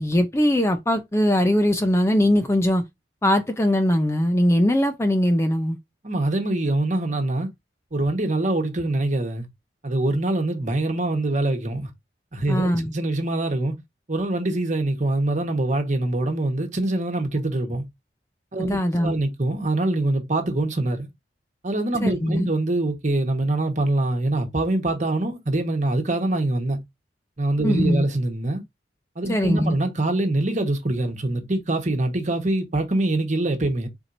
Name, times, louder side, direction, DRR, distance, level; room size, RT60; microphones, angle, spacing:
voice 1, 0.0-2.8 3.2-5.8 12.5-12.9 18.7-19.2 22.0-22.5 27.6-28.1 29.3-29.8, equal, 15° left, 0.5 m, -21 dB
voice 2, 6.0-7.5 7.9-9.5 9.8-11.9 12.3-13.8 14.1-17.8 18.5-21.1 21.6-26.8 27.4-28.6 29.2-33.9, right 2 dB, 45° right, 1.2 m, -24 dB
4.5 x 4.4 x 2.6 m
head